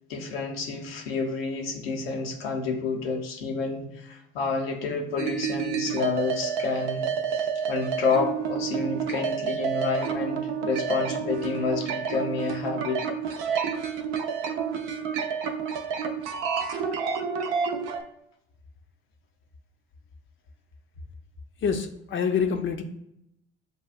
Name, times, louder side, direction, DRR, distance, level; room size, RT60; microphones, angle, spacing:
voice 1, 0.1-7.1 7.3-13.0, left 4 dB, 90° left, 2 dB, 0.6 m, -29 dB
sound 1, 5.2-18.0, right 6 dB, 75° right, 0.6 m, -29 dB
voice 2, 21.6-22.8, left 6 dB, 40° left, 5 dB, 0.5 m, -26 dB
6.5 x 2.3 x 2.4 m, 0.78 s
hypercardioid pair, 55°, 29 cm